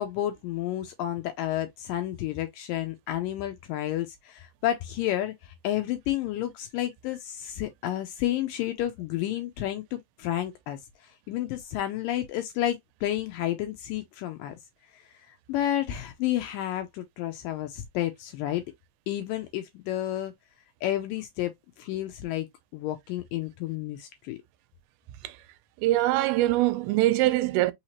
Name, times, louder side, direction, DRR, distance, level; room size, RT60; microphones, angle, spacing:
voice 1, 0.0-10.8 11.3-14.6 14.9-15.0 15.5-18.6 19.1-20.3 20.8-22.5 22.7-24.4, left 13 dB, 80° left, 2.0 m, -31 dB
voice 2, 25.8-27.7, right 16 dB, 85° right, 2.5 m, -23 dB
5.6 x 2.9 x 2.9 m
omnidirectional pair, 4.5 m